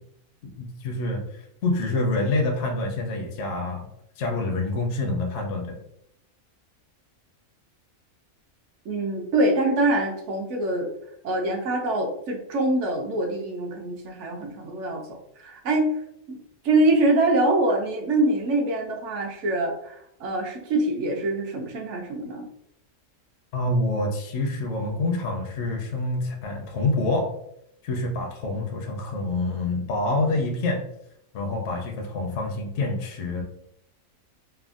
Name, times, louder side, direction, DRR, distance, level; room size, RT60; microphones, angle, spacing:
voice 1, 0.4-3.9 4.2-5.8 23.5-27.3 27.8-30.8 31.3-33.4, left 2 dB, 65° left, 2 dB, 0.8 m, -27 dB
voice 2, 8.9-10.9 11.2-15.0 15.4-15.9 16.3-16.4 16.6-22.5, right 2 dB, 65° right, 2 dB, 0.8 m, -24 dB
3.3 x 2.1 x 2.4 m, 0.75 s
omnidirectional pair, 1.5 m